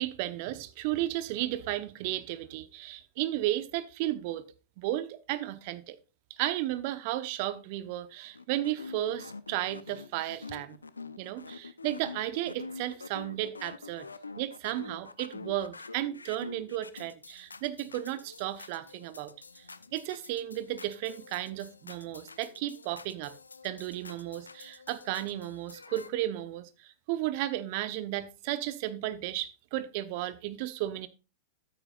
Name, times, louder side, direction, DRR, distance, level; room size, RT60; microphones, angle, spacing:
voice 1, 0.0-4.4 4.8-6.0 6.3-10.8 11.2-14.1 14.4-23.3 23.6-31.1, right 14 dB, 50° right, 0.9 m, -34 dB
sound 1, 8.3-26.1, left 4 dB, 85° left, 0.5 m, -47 dB
13.0 x 9.0 x 2.4 m
figure-of-eight pair, 100°, 0 cm